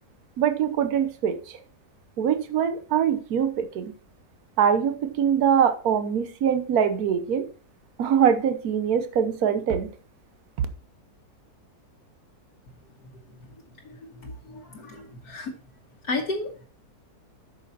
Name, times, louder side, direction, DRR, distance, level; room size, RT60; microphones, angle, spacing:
voice 1, 0.4-1.6 2.2-3.9 4.6-7.4 8.0-9.9, right 8 dB, 70° right, 10 dB, 1.4 m, -23 dB
voice 2, 14.2-15.5 16.1-16.7, left 2 dB, 80° left, -1 dB, 1.7 m, -32 dB
8.3 x 6.6 x 4.2 m, 0.39 s
omnidirectional pair, 1.7 m